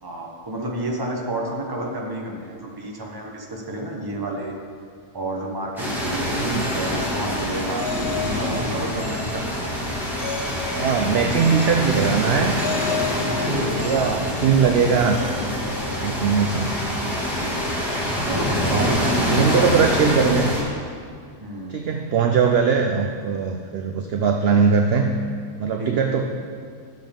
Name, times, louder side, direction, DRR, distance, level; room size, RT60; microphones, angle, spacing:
voice 1, 0.0-4.6 5.1-9.6 13.2-14.2 17.3-17.7 18.2-19.7 20.0-20.1 21.4-21.8 25.8-26.0, right 1 dB, 20° right, -1 dB, 1.0 m, -30 dB
sound 1, 5.8-20.6, left 1 dB, ahead, 1.7 m, -25 dB
voice 2, 6.3-6.7 10.7-12.5 13.8-15.3 16.0-16.7 18.6-18.9 19.3-20.5 21.7-25.1 25.6-26.2, right 6 dB, 65° right, 4 dB, 0.6 m, -20 dB
sound 2, 6.6-16.4, left 4 dB, 45° left, 1.0 m, -35 dB
11.5 x 7.5 x 3.5 m, 2.2 s
omnidirectional pair, 1.5 m